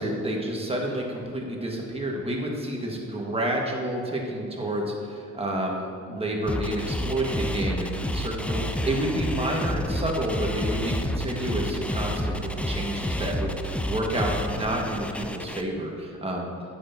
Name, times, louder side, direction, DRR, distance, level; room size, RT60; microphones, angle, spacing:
voice 1, 0.0-16.5, right 1 dB, 20° right, -1 dB, 1.6 m, -29 dB
sound 1, 6.5-15.6, equal, 5° left, 0.5 m, -30 dB
9.6 x 8.0 x 2.8 m, 2.7 s
cardioid pair, 90°, 30 cm